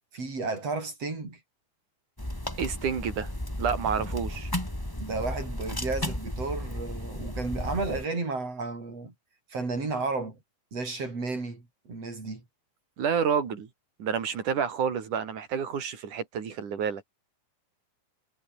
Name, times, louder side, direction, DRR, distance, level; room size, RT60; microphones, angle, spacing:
voice 1, 0.1-1.4 5.0-9.1 9.5-10.4 10.7-12.4, right 3 dB, 50° right, 7.6 m, -33 dB
sound 1, 2.2-8.1, left 1 dB, 5° left, 4.0 m, -34 dB
voice 2, 2.6-3.3 3.6-4.5 13.0-13.7 14.0-17.1, right 7 dB, 75° right, 4.5 m, -29 dB
omnidirectional pair, 3.6 m